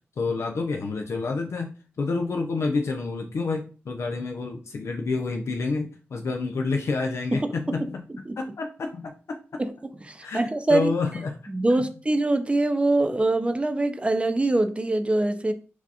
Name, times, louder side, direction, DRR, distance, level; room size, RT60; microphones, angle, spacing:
voice 1, 0.2-1.7 2.0-8.0 8.4-9.4 10.2-10.4 10.7-11.4 11.8-11.9, left 4 dB, 80° left, 0.5 m, -28 dB
voice 2, 10.0-10.9 11.5-15.5, right 2 dB, 25° right, 0.5 m, -23 dB
6.0 x 2.4 x 2.8 m
cardioid pair, 65°, 5 cm